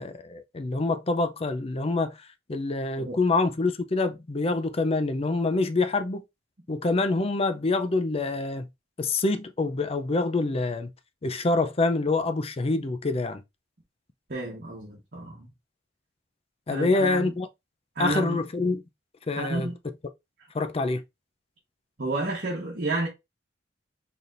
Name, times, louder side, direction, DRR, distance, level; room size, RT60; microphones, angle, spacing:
voice 1, 0.0-2.2 2.5-6.2 6.7-8.7 9.0-10.9 11.2-13.4 16.7-17.5 18.0-18.8 19.3-19.7 20.5-21.0, left 3 dB, 30° left, 0.5 m, -26 dB
voice 2, 14.3-15.5 16.7-17.3 18.0-18.4 19.4-19.7 22.0-23.1, right 2 dB, 50° right, 1.2 m, -31 dB
4.2 x 3.4 x 2.5 m
head